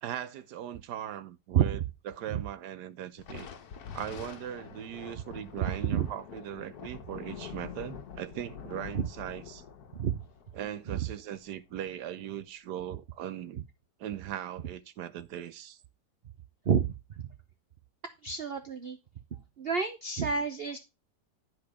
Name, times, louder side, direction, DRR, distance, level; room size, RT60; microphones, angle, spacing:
voice 1, 0.0-1.8 2.0-3.5 3.9-9.6 10.5-13.6 14.0-15.8, right 10 dB, 85° right, 1.4 m, -39 dB
Thunder, 3.2-11.9, left 8 dB, 70° left, 1.4 m, -46 dB
voice 2, 18.2-19.0 19.6-20.8, right 7 dB, 50° right, 0.8 m, -28 dB
10.5 x 4.8 x 4.8 m
omnidirectional pair, 1.7 m